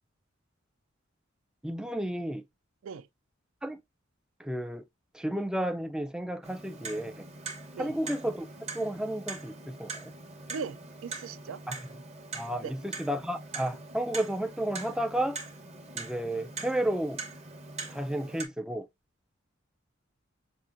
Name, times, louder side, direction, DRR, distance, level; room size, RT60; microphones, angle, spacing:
voice 1, 1.6-2.4 3.6-3.8 4.4-4.8 5.1-7.3 7.8-10.1 11.7-11.8 12.3-15.4 15.9-17.2 17.9-18.9, right 1 dB, 5° right, 0.3 m, -32 dB
Clock, 6.4-18.4, right 3 dB, 35° right, 0.8 m, -42 dB
voice 2, 10.5-11.6 12.6-12.7, right 5 dB, 80° right, 0.3 m, -39 dB
5.7 x 2.5 x 2.5 m
head